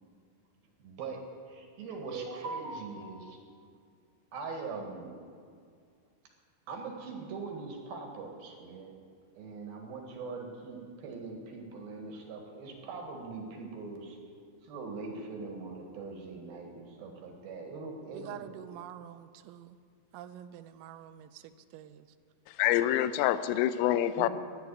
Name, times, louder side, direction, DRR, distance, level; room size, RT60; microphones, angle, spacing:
voice 1, 0.8-3.4 4.3-5.1 6.7-8.9 9.4-14.2 14.6-18.4 24.2-24.3, right 4 dB, 60° right, 2 dB, 3.1 m, -41 dB
voice 2, 18.1-19.8 20.1-22.1, right 11 dB, 90° right, 10 dB, 3.3 m, -47 dB
voice 3, 22.5-24.3, left 12 dB, 90° left, 13 dB, 3.2 m, -26 dB
14.0 x 10.0 x 9.7 m, 2.2 s
omnidirectional pair, 5.8 m